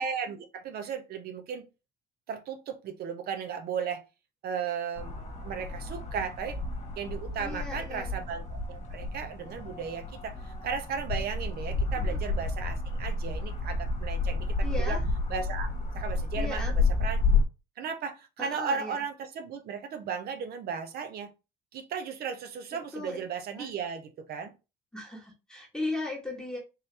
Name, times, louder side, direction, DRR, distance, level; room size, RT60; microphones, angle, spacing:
voice 1, 0.0-1.7 2.3-4.0 4.4-6.6 7.0-14.5 14.8-15.0 15.3-15.7 15.9-16.6 17.0-17.2 17.8-21.3 21.7-24.5, right 6 dB, 65° right, 0.7 m, -35 dB
sound 1, 4.9-17.4, left 3 dB, 40° left, 1.3 m, -30 dB
voice 2, 7.4-8.1 12.1-12.2 14.6-15.0 16.4-16.7 18.4-19.0 22.9-23.2 23.5-23.7 24.9-26.6, left 2 dB, 5° left, 1.3 m, -37 dB
3.9 x 2.7 x 3.2 m
cardioid pair, 110°, 17 cm